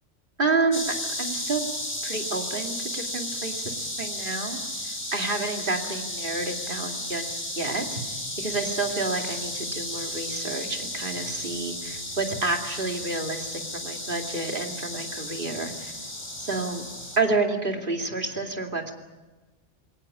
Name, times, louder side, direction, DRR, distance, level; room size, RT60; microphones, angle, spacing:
voice 1, 0.4-1.6 2.0-4.6 4.8-8.0 8.4-15.9 16.4-16.8 17.2-18.9, right 3 dB, 45° right, 3 dB, 2.7 m, -29 dB
sound 1, 0.7-17.2, left 1 dB, 25° left, 4.0 m, -34 dB
22.0 x 18.5 x 9.7 m, 1.2 s
omnidirectional pair, 1.2 m